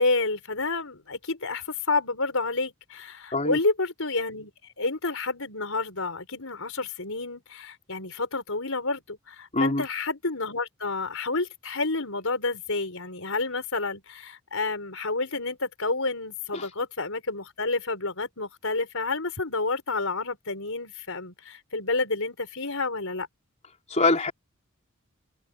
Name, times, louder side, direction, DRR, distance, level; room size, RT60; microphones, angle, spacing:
voice 1, 0.0-4.5 4.8-23.3, left 3 dB, 65° left, 6.0 m, -29 dB
voice 2, 9.5-9.8 16.5-16.6 23.9-24.3, left 2 dB, 35° left, 4.1 m, -23 dB
open air
head